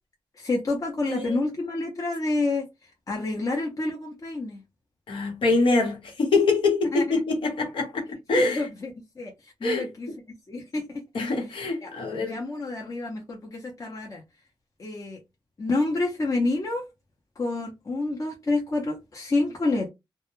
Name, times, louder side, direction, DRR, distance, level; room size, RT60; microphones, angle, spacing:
voice 1, 0.4-2.7 3.1-4.6 6.9-7.2 8.4-8.9 9.2-9.3 9.6-10.1 10.5-11.0 11.8-14.2 14.8-15.2 15.6-16.8 17.4-19.9, left 2 dB, 40° left, 0.7 m, -28 dB
voice 2, 1.1-1.4 5.1-8.7 9.6-9.8 11.1-12.4, left 3 dB, 85° left, 1.0 m, -24 dB
2.3 x 2.2 x 2.9 m
cardioid pair, 80°, 9 cm